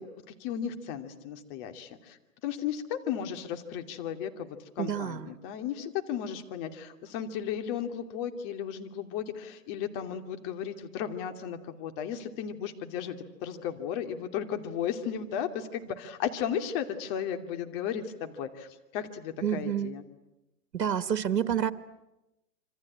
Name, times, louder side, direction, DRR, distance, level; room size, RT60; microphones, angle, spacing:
voice 1, 0.0-13.2 13.4-20.0, left 8 dB, 35° left, 7 dB, 2.7 m, -35 dB
voice 2, 4.8-5.3 19.4-19.9 20.7-21.7, right 9 dB, 85° right, 12 dB, 1.7 m, -29 dB
26.5 x 26.0 x 8.7 m, 0.95 s
hypercardioid pair, 140°, 48 cm